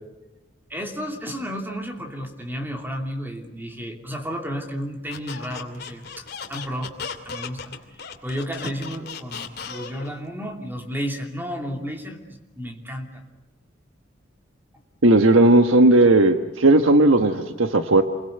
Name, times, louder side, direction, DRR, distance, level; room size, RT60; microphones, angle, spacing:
voice 1, 0.7-7.0 7.2-13.2, equal, 10° right, 3 dB, 2.9 m, -32 dB
Squeak, 5.1-10.2, left 6 dB, 55° left, 2.7 m, -36 dB
voice 2, 15.0-18.0, right 2 dB, 90° right, 7 dB, 1.3 m, -16 dB
28.0 x 23.0 x 8.1 m, 1.1 s
head